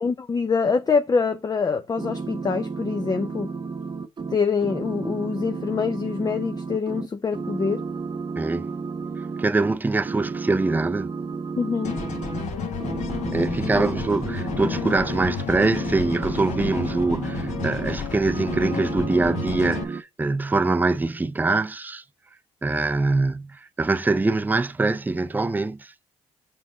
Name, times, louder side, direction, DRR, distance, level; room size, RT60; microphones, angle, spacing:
voice 1, 0.0-3.5 4.3-7.8 11.6-12.0 13.7-13.9, left 5 dB, 30° left, 0.7 m, -25 dB
sound 1, 2.0-7.1 7.3-9.8 10.0-12.4 12.8-18.0 18.2-20.0, right 4 dB, 35° right, 0.9 m, -32 dB
voice 2, 8.4-8.7 9.4-11.1 13.3-22.0 22.6-25.9, right 3 dB, 15° right, 0.5 m, -24 dB
sound 2, 11.8-19.8, left 5 dB, 65° left, 1.6 m, -31 dB
5.7 x 3.9 x 5.3 m
supercardioid pair, 65°, 13 cm